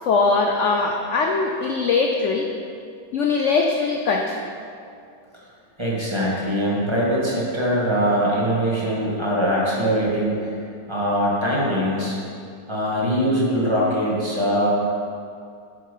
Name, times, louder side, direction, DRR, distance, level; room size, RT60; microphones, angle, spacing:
voice 1, 0.0-2.5 3.1-4.4, left 4 dB, 60° left, 2 dB, 0.8 m, -21 dB
voice 2, 5.8-10.5 10.9-12.2 12.7-14.7, equal, 15° right, -6 dB, 1.9 m, -22 dB
9.1 x 7.6 x 5.6 m, 2.4 s
omnidirectional pair, 1.9 m